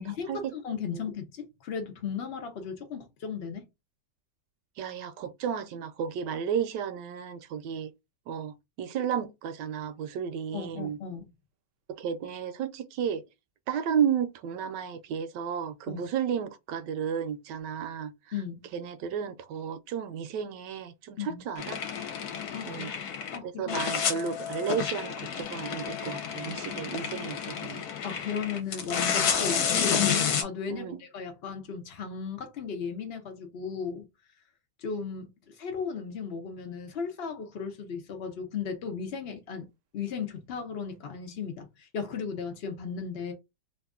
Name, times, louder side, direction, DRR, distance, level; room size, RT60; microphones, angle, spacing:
voice 1, 0.0-3.7 10.5-11.3 15.9-16.0 18.3-18.7 21.2-21.4 22.5-22.8 23.3-23.7 28.0-34.1 34.8-39.7 39.9-43.3, left 6 dB, 90° left, 0.5 m, -36 dB
voice 2, 4.8-7.9 8.3-11.0 11.9-13.2 13.7-18.1 18.7-21.8 22.7-22.9 23.4-27.8 30.7-31.0, right 8 dB, 75° right, 1.1 m, -33 dB
sound 1, 21.6-23.4 23.7-30.4, left 7 dB, 65° left, 1.1 m, -30 dB
3.0 x 2.4 x 3.5 m
omnidirectional pair, 2.0 m